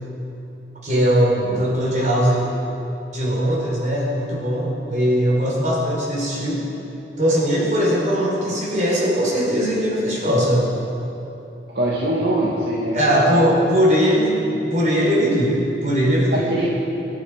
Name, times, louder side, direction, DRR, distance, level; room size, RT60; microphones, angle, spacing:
voice 1, 0.8-2.5 3.1-6.6 7.2-10.7 12.9-16.5, equal, 45° right, -4 dB, 4.4 m, -20 dB
voice 2, 11.7-13.0 13.3-13.5 16.3-16.7, right 1 dB, 65° right, -5 dB, 1.9 m, -22 dB
23.5 x 11.0 x 5.1 m, 2.9 s
head